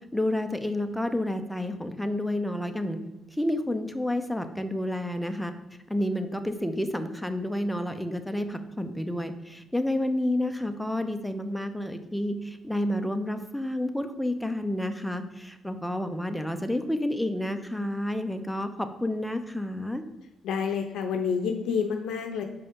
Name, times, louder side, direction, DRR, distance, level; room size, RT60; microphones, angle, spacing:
voice 1, 0.1-3.0 3.3-5.5 5.9-20.0, left 1 dB, ahead, 7 dB, 0.6 m, -30 dB
voice 2, 20.4-22.4, left 6 dB, 80° left, 4 dB, 0.5 m, -28 dB
5.4 x 5.4 x 3.7 m, 1.1 s
cardioid pair, 90°, 0 cm